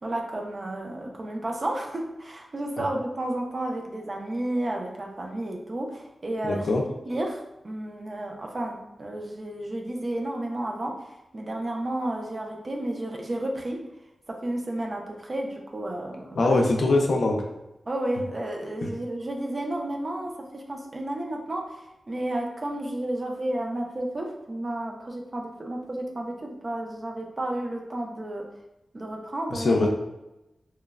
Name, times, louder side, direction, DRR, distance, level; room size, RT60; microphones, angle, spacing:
voice 1, 0.0-6.7 7.1-11.0 11.3-13.8 14.3-16.6 17.9-28.5 28.9-29.9, right 1 dB, 35° right, 1 dB, 0.4 m, -32 dB
voice 2, 6.4-6.8 16.4-17.4 29.5-29.9, left 2 dB, 70° left, 1 dB, 0.4 m, -22 dB
3.0 x 2.0 x 2.3 m, 0.93 s
wide cardioid pair, 135°, 0 cm